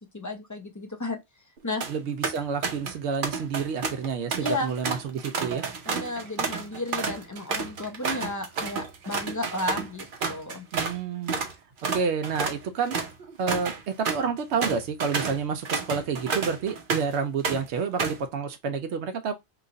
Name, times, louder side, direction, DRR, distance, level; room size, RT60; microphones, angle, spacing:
voice 1, 0.1-1.2 1.6-1.8 4.4-4.7 5.9-10.7, left 2 dB, 20° left, 0.5 m, -33 dB
sound 1, 1.6-1.9 2.2-3.0 3.2-11.0 11.3-11.5 11.8-17.2 17.4-18.3, right 4 dB, 55° right, 0.9 m, -31 dB
voice 2, 1.9-5.6 10.7-11.4 11.9-13.0 13.4-19.3, right 6 dB, 80° right, 0.9 m, -29 dB
3.0 x 2.4 x 3.8 m
omnidirectional pair, 1.1 m